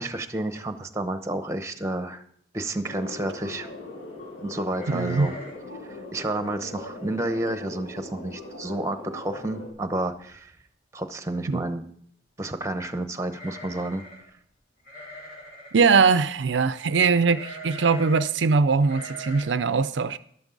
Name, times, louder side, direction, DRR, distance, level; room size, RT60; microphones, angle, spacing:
voice 1, 0.0-2.2 2.5-3.7 4.4-5.3 5.9-10.5 10.9-11.9 12.4-14.0, right 1 dB, 15° right, 0.9 m, -30 dB
sound 1, 2.9-9.7, left 2 dB, 85° left, 4.5 m, -40 dB
sound 2, 4.7-5.7 5.9-6.0 6.5-6.8 7.3-7.4 7.7-8.2 8.6-8.7 9.8-9.9 10.2-10.6 13.3-14.3 14.9-15.8 17.3-18.3 18.8-19.4, equal, 55° left, 4.9 m, -42 dB
voice 2, 4.9-5.3 11.5-11.6 15.7-20.2, right 5 dB, 75° right, 0.5 m, -21 dB
13.5 x 12.0 x 3.9 m
head